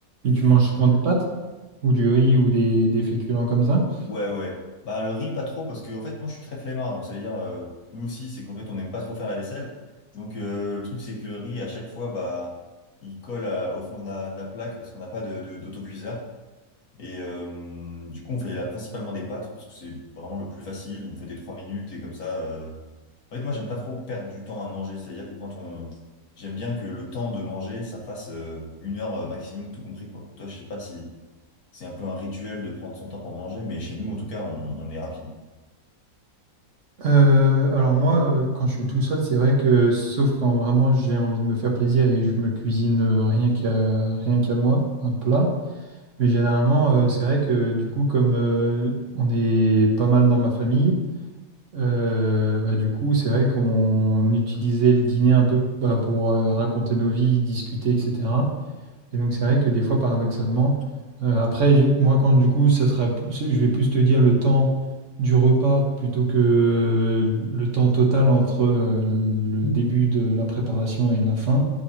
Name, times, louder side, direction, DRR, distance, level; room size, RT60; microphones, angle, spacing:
voice 1, 0.2-1.3 1.8-3.9 37.0-45.5 46.2-51.0 51.7-58.5 59.1-60.8 61.2-64.7 65.2-71.7, right 2 dB, 55° right, -1 dB, 1.5 m, -20 dB
voice 2, 4.1-9.7 10.1-12.6 13.0-16.2 17.0-22.8 23.3-26.0 26.4-31.1 31.7-35.3, left 2 dB, 75° left, -1 dB, 1.8 m, -33 dB
12.5 x 4.8 x 2.8 m, 1.2 s
omnidirectional pair, 1.6 m